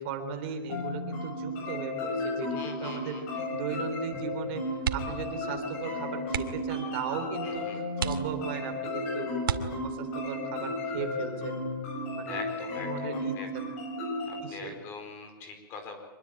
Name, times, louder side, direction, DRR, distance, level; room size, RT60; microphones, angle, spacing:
voice 1, 0.0-4.6 4.9-9.3 9.6-12.4 12.8-13.6 14.1-14.7, right 7 dB, 30° right, 6 dB, 3.8 m, -38 dB
sound 1, 0.7-14.4, left 2 dB, 40° left, 6.4 m, -34 dB
voice 2, 2.5-3.4 7.4-7.8 12.2-13.5 14.3-16.0, left 4 dB, 20° left, 5 dB, 4.8 m, -43 dB
sound 2, 4.8-5.3 5.6-5.8 6.2-6.7 7.4-7.5 7.9-8.7 9.4-10.2 11.7-12.1 12.4-12.5, right 8 dB, 85° right, 2.3 m, -33 dB
25.5 x 21.5 x 8.9 m, 1.1 s
hypercardioid pair, 175°, 11 cm